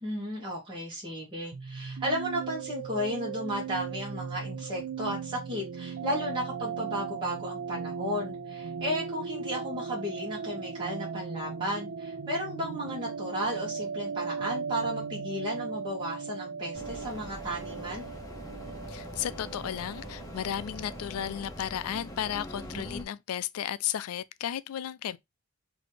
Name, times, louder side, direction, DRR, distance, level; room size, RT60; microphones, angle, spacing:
voice 1, 0.0-18.1, equal, 20° right, 1.3 m, -34 dB
sound 1, 1.5-21.0, right 6 dB, 85° right, 0.5 m, -38 dB
sound 2, 16.7-23.0, equal, 15° left, 1.0 m, -42 dB
voice 2, 18.9-25.2, left 10 dB, 85° left, 0.4 m, -34 dB
4.1 x 2.8 x 3.2 m
head